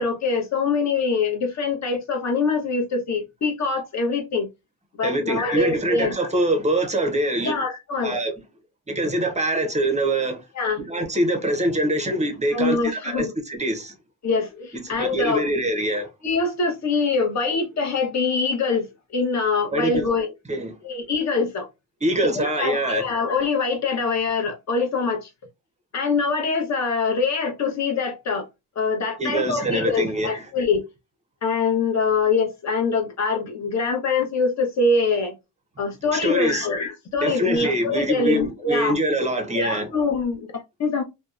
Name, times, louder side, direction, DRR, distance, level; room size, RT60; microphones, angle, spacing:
voice 1, 0.0-4.5 5.0-6.2 7.4-8.1 10.6-10.9 12.5-13.3 14.2-15.5 16.2-18.9 19.1-20.3 20.8-21.7 22.3-25.3 25.9-28.5 28.8-30.9 31.4-35.3 35.8-38.9 39.5-41.0, left 4 dB, 40° left, 0.7 m, -24 dB
voice 2, 5.0-7.6 8.0-8.3 8.9-10.5 10.8-14.0 14.8-16.1 19.7-20.0 20.5-20.8 22.0-23.0 29.2-30.3 36.1-36.7 37.2-39.9, right 1 dB, 15° right, 0.5 m, -24 dB
2.6 x 2.1 x 2.3 m
cardioid pair, 120°, 42 cm